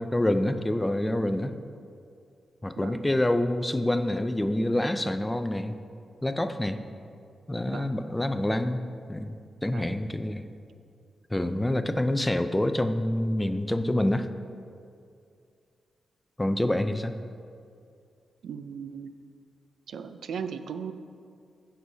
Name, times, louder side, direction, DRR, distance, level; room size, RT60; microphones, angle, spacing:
voice 1, 0.0-1.5 2.6-5.8 6.2-6.8 7.5-8.8 9.1-10.4 11.3-14.3 16.4-17.1, left 1 dB, 10° left, 9 dB, 0.3 m, -27 dB
voice 2, 18.4-19.1 19.9-20.9, right 6 dB, 85° right, 10 dB, 0.4 m, -37 dB
15.5 x 6.3 x 2.7 m, 2.4 s
wide cardioid pair, 160°, 0 cm